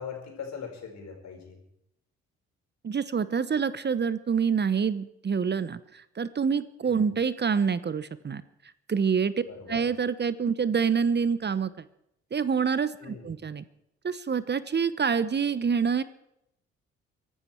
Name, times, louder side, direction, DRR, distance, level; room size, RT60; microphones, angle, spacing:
voice 1, 0.0-1.6 6.8-7.0 9.4-9.8 13.0-13.4, left 6 dB, 60° left, 1 dB, 5.1 m, -41 dB
voice 2, 2.8-8.4 8.9-9.3 9.7-11.7 12.3-13.6 14.0-16.0, right 6 dB, 35° right, 16 dB, 0.9 m, -26 dB
23.5 x 12.0 x 4.5 m, 0.80 s
hypercardioid pair, 45°, 31 cm